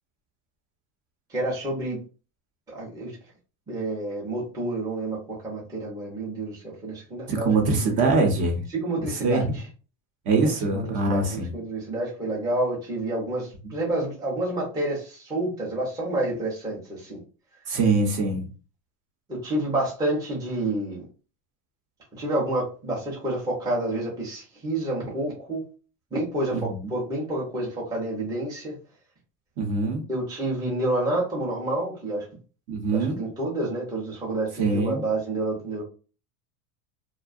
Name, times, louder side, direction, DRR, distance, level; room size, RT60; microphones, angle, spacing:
voice 1, 1.3-2.0 2.7-3.1 3.7-7.5 8.8-9.4 10.4-11.2 11.5-17.2 19.3-21.0 22.2-25.6 26.1-28.8 30.1-32.2 32.9-35.8, right 1 dB, 10° right, -5 dB, 0.6 m, -29 dB
voice 2, 7.3-8.6 9.0-9.6 10.2-11.5 13.6-13.7 17.7-18.5 26.5-26.9 29.6-30.0 32.7-33.2 34.6-35.0, right 3 dB, 40° right, 2 dB, 0.8 m, -23 dB
2.6 x 2.3 x 2.4 m, 0.35 s
supercardioid pair, 140°, 48 cm